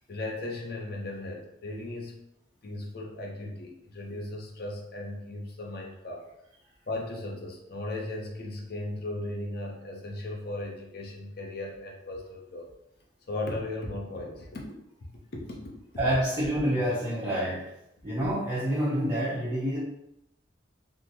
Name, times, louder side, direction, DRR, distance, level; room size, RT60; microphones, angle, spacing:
voice 1, 0.1-2.2 2.6-6.3 6.9-12.7 13.3-14.7 15.3-15.7, left 2 dB, 55° left, -1 dB, 0.7 m, -36 dB
voice 2, 16.0-17.7 18.0-19.8, equal, 20° right, -9 dB, 0.7 m, -27 dB
3.6 x 2.1 x 2.9 m, 0.82 s
head